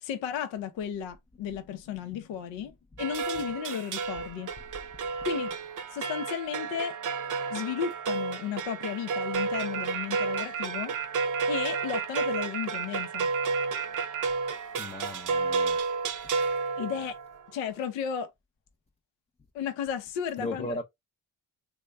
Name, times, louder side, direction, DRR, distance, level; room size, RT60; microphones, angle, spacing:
voice 1, 0.0-4.5 5.2-5.5 5.9-7.0 7.5-10.9 11.5-13.3 16.8-17.2 17.5-18.3 19.5-20.8, left 8 dB, 75° left, 0.7 m, -34 dB
sound 1, 3.0-17.4, right 4 dB, 45° right, 0.7 m, -32 dB
sound 2, 9.3-14.2, right 9 dB, 85° right, 0.6 m, -33 dB
voice 2, 14.8-15.8 20.4-20.8, left 2 dB, 15° left, 0.5 m, -36 dB
3.1 x 2.2 x 3.3 m
hypercardioid pair, 55°, 45 cm